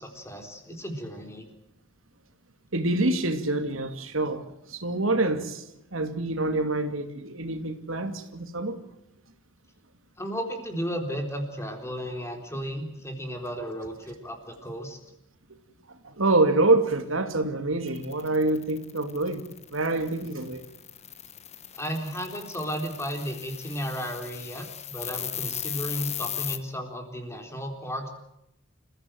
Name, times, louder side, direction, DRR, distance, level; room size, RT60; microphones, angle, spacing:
voice 1, 0.0-1.5 10.2-15.0 21.7-28.1, equal, 15° left, 4 dB, 4.0 m, -34 dB
voice 2, 2.7-5.6 5.9-8.8 15.9-19.4 19.7-20.7, right 2 dB, 90° right, 7 dB, 2.5 m, -26 dB
sound 1, 17.9-26.6, left 10 dB, 35° left, 1.3 m, -37 dB
28.0 x 15.5 x 7.8 m, 0.83 s
head